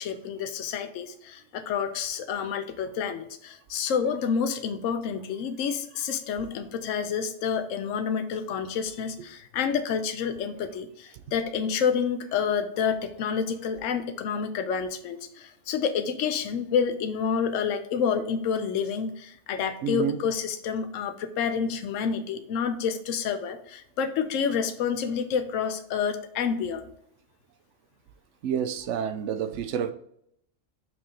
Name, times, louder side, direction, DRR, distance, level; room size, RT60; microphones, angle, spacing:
voice 1, 0.0-26.9, left 6 dB, 85° left, 8 dB, 1.0 m, -29 dB
voice 2, 19.8-20.2 28.4-29.9, right 8 dB, 75° right, 11 dB, 0.9 m, -29 dB
5.8 x 3.7 x 5.0 m, 0.70 s
omnidirectional pair, 1.3 m